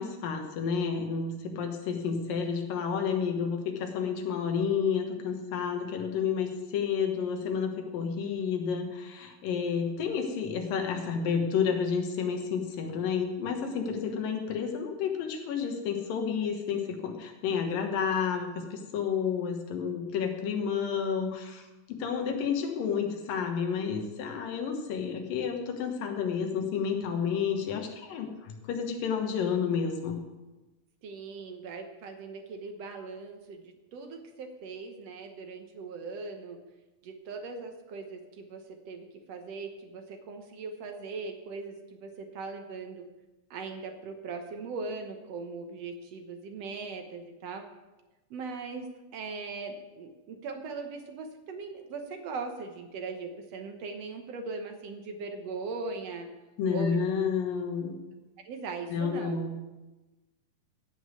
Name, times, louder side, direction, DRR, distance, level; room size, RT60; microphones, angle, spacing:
voice 1, 0.0-30.2 56.6-57.9 58.9-59.6, left 6 dB, 80° left, 4 dB, 3.0 m, -30 dB
voice 2, 31.0-36.6 37.0-43.1 43.5-47.7 48.3-56.3 56.7-57.0 58.5-59.4, right 4 dB, 65° right, 5 dB, 1.7 m, -39 dB
15.0 x 5.4 x 8.2 m, 1.1 s
omnidirectional pair, 3.9 m